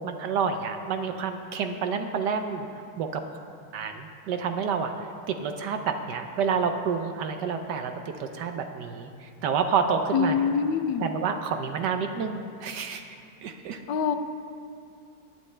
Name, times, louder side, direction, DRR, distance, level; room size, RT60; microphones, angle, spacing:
voice 1, 0.0-2.7 3.0-3.2 3.7-10.4 11.0-13.2 13.4-13.8, right 6 dB, 75° right, 6 dB, 1.3 m, -29 dB
voice 2, 10.1-11.0 13.9-14.1, left 6 dB, 85° left, 9 dB, 1.3 m, -24 dB
19.5 x 11.0 x 3.3 m, 2.5 s
omnidirectional pair, 1.9 m